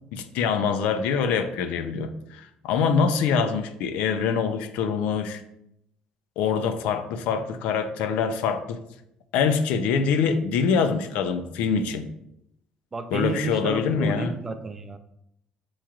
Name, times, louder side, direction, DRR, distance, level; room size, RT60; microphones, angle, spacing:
voice 1, 0.1-5.4 6.4-8.8 9.3-12.1 13.1-14.3, left 6 dB, 90° left, 10 dB, 0.4 m, -24 dB
voice 2, 12.9-15.0, right 3 dB, 15° right, 8 dB, 0.3 m, -31 dB
7.1 x 3.1 x 2.4 m, 0.79 s
cardioid pair, 170°, 2 cm